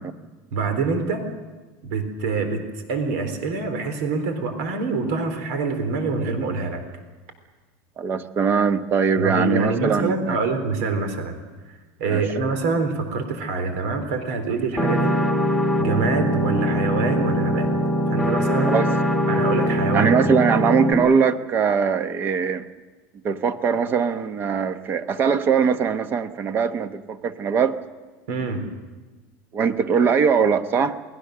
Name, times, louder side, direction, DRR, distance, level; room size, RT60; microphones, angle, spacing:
voice 1, 0.5-1.3 1.8-2.6 2.9-6.8 9.2-11.4 12.0-15.2 15.8-17.7 18.1-18.8 19.3-20.1 28.3-28.7, right 4 dB, 85° right, 7 dB, 3.9 m, -25 dB
voice 2, 8.0-10.4 12.1-12.2 18.7-18.9 19.9-22.6 23.2-27.8 29.5-31.0, right 6 dB, 25° right, 11 dB, 1.0 m, -21 dB
sound 1, 14.8-20.9, equal, 5° right, 1.6 m, -22 dB
28.5 x 20.0 x 6.7 m, 1.3 s
cardioid pair, 170°, 8 cm